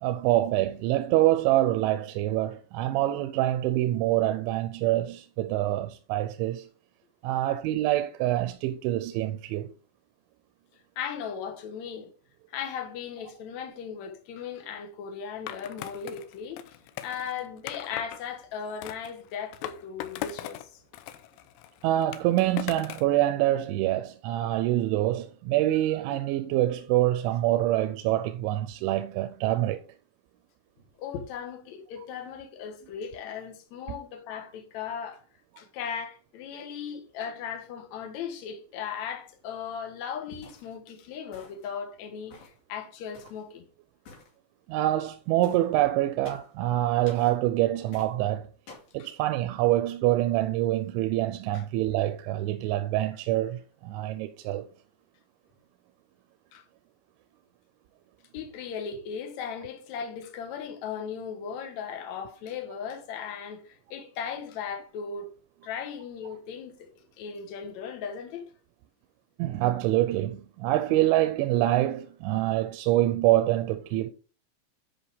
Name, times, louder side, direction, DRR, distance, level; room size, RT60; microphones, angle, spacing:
voice 1, 0.0-6.7 7.2-9.7 21.8-29.8 33.9-34.0 44.7-48.5 48.9-54.7 69.4-74.1, right 14 dB, 90° right, 3.0 m, -26 dB
voice 2, 11.0-12.1 12.5-16.8 17.0-20.8 31.0-35.2 35.6-43.6 49.0-49.1 51.5-51.6 56.5-56.6 58.3-65.3 65.6-66.9 67.2-68.5, left 7 dB, 70° left, 1.7 m, -37 dB
Skateboard, 15.5-18.2 18.8-20.7 20.9-23.1, left 13 dB, 90° left, 3.2 m, -39 dB
sound 1, 40.4-40.7 41.3-41.7 42.3-42.6 43.1-43.4 44.0-44.3 45.4-45.7 46.2-46.5 47.1-47.4 47.9-48.1 48.7-48.9, left 4 dB, 50° left, 3.2 m, -49 dB
10.0 x 5.3 x 3.6 m
omnidirectional pair, 5.3 m